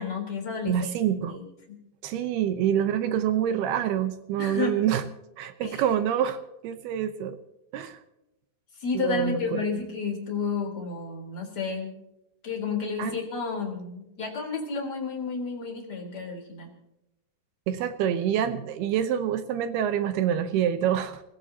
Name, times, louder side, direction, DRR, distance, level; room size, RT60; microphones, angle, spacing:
voice 1, 0.0-0.9 1.3-1.8 4.4-4.8 5.6-5.8 8.8-11.9 12.4-16.7, left 5 dB, 20° left, 2 dB, 3.9 m, -31 dB
voice 2, 0.7-1.4 2.0-5.0 5.4-7.4 7.7-8.0 8.9-9.8 13.0-13.1 17.7-21.2, right 9 dB, 75° right, 10 dB, 2.4 m, -26 dB
29.5 x 16.0 x 2.9 m, 0.91 s
omnidirectional pair, 5.6 m